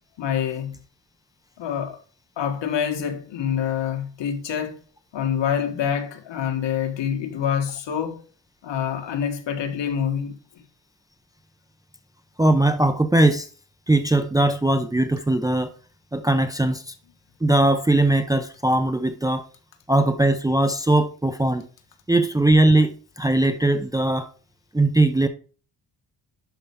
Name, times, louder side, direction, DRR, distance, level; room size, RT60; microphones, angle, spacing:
voice 1, 0.2-0.8 1.6-2.0 2.4-4.8 5.1-8.2 8.6-10.6, left 8 dB, 80° left, 1.8 m, -26 dB
voice 2, 12.4-13.5 13.9-15.7 16.1-16.9 17.4-19.4 19.9-21.7 22.1-24.3 24.7-25.3, right 2 dB, 10° right, 0.5 m, -20 dB
11.5 x 5.5 x 3.6 m
cardioid pair, 140°, 44 cm